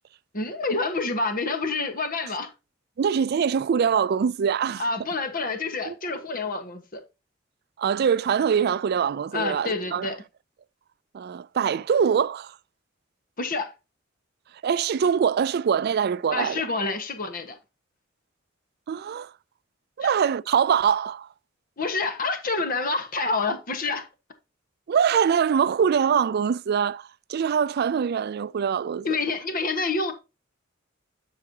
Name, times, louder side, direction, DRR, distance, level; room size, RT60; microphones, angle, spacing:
voice 1, 0.3-2.5 4.8-7.0 9.3-10.2 13.4-13.7 16.3-17.5 21.8-24.1 29.0-30.1, left 3 dB, 45° left, 1.4 m, -28 dB
voice 2, 3.0-4.9 5.8-6.0 7.8-10.1 11.1-12.6 14.6-16.7 18.9-19.3 20.0-21.3 24.9-29.2, right 7 dB, 55° right, 0.3 m, -23 dB
12.0 x 4.8 x 2.8 m
head